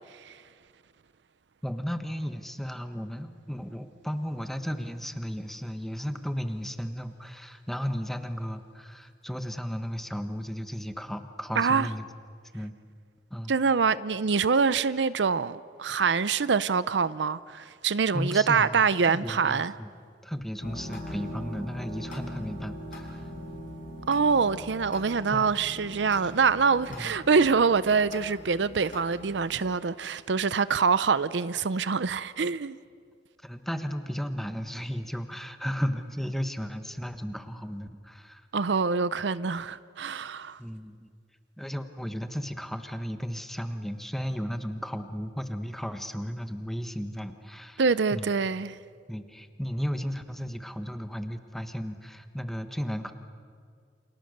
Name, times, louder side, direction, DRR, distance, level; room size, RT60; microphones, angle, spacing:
voice 1, 1.6-12.1 12.5-12.7 13.3-13.5 18.1-19.9 20.2-23.2 25.3-25.6 26.9-27.1 33.4-38.4 40.6-41.1 41.6-47.8 48.1-48.3 49.1-53.1, equal, ahead, 1.3 m, -34 dB
voice 2, 11.6-11.9 13.5-19.7 24.1-32.8 38.5-40.6 47.8-48.8, right 5 dB, 85° right, 0.6 m, -25 dB
sound 1, 20.6-29.8, equal, 50° left, 5.1 m, -41 dB
29.5 x 27.5 x 6.7 m
head